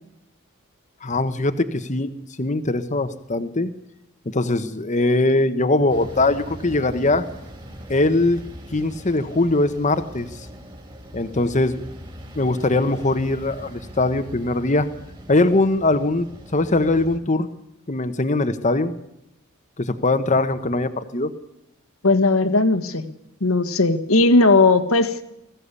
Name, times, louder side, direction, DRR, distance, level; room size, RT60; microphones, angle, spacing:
voice 1, 1.0-2.1 2.4-3.7 4.2-7.3 7.9-8.4 8.7-10.5 11.1-11.8 12.3-14.9 15.3-16.3 16.5-17.5 17.9-18.9 19.8-21.3, left 2 dB, 35° left, 9 dB, 1.1 m, -21 dB
sound 1, 5.9-17.2, equal, 25° right, 3.3 m, -40 dB
voice 2, 22.0-23.0 23.4-25.2, left 3 dB, 75° left, 8 dB, 1.6 m, -17 dB
21.0 x 15.0 x 8.4 m, 0.85 s
head